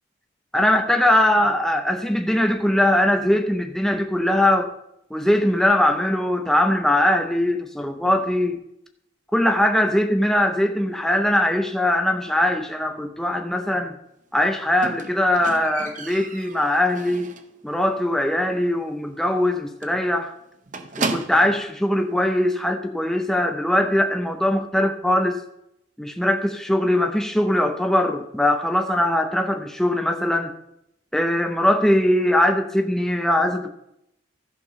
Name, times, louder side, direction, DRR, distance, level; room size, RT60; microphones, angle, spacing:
voice 1, 0.5-4.7 5.1-8.6 9.3-14.0 14.3-17.3 17.6-20.3 21.0-25.4 26.0-30.5 31.1-33.7, left 1 dB, ahead, 4 dB, 0.6 m, -21 dB
Squeak, 14.8-17.6 17.9-18.3 18.6-18.7 19.1-19.2 19.4-19.6 19.8-21.7 22.5-22.6, right 3 dB, 45° right, 0.8 m, -33 dB
13.5 x 5.4 x 5.6 m, 0.79 s
head